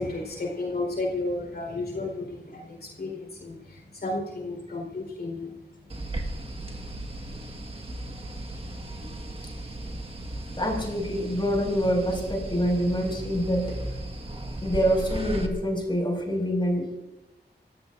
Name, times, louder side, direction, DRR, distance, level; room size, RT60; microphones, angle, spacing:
voice 1, 0.0-2.7 3.0-3.6 4.0-5.5, left 2 dB, 65° left, 1 dB, 4.3 m, -32 dB
sound 1, 5.9-15.5, right 1 dB, 35° right, 1.7 m, -36 dB
voice 2, 10.6-13.8 14.6-17.0, equal, 25° left, 1 dB, 5.7 m, -26 dB
28.5 x 14.5 x 2.6 m, 0.95 s
wide cardioid pair, 90°, 18 cm